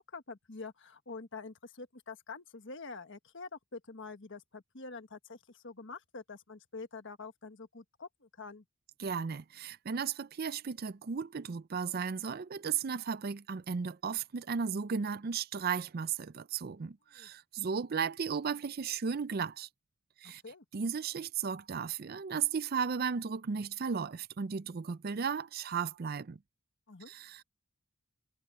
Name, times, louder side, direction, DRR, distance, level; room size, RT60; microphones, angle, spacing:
voice 1, 0.1-8.6 17.1-17.3 20.2-20.6 26.9-27.1, left 4 dB, 60° left, 1.4 m, -46 dB
voice 2, 9.0-19.7 20.2-20.4 20.7-26.4 27.1-27.4, right 6 dB, 45° right, 0.5 m, -35 dB
head